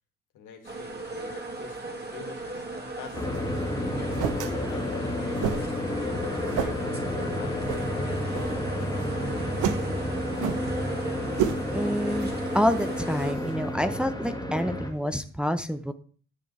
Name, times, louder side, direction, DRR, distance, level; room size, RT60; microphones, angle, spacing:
voice 1, 0.3-3.6 4.5-5.7 6.4-10.0, left 7 dB, 90° left, 3 dB, 2.3 m, -46 dB
sound 1, 0.6-13.3, right 2 dB, 35° right, 2.3 m, -36 dB
sound 2, 3.1-14.9, left 1 dB, 15° left, 2.1 m, -31 dB
sound 3, 3.1-13.8, right 8 dB, 90° right, 0.9 m, -35 dB
voice 2, 11.7-15.9, equal, 5° right, 8 dB, 0.8 m, -28 dB
11.0 x 7.0 x 3.3 m, 0.41 s
cardioid pair, 90°, 30 cm